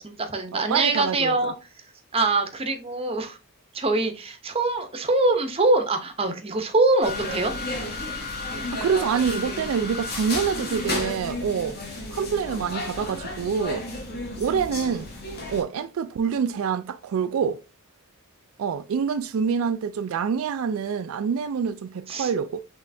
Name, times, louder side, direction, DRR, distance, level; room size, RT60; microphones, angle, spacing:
voice 1, 0.0-1.5 2.1-3.4 3.7-7.5 22.1-22.3, right 2 dB, 25° right, 0.7 m, -23 dB
voice 2, 0.5-1.5 8.7-11.8 12.1-13.9 14.4-15.1 15.5-17.6 18.6-22.6, right 6 dB, 75° right, 0.3 m, -26 dB
sound 1, 7.0-15.6, left 2 dB, 45° left, 1.4 m, -32 dB
6.2 x 3.1 x 2.6 m
head